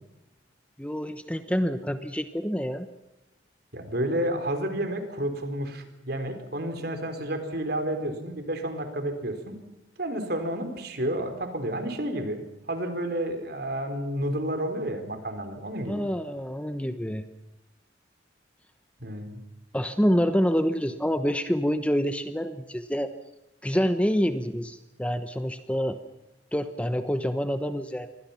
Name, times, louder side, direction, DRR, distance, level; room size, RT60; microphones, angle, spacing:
voice 1, 0.8-2.9 15.9-17.2 19.7-23.1 23.6-26.0 26.5-28.1, equal, 5° left, 9 dB, 1.0 m, -27 dB
voice 2, 3.7-9.5 10.0-12.4 12.7-16.0 19.0-19.4, right 1 dB, 55° right, 7 dB, 4.4 m, -30 dB
27.5 x 24.0 x 5.9 m, 0.96 s
head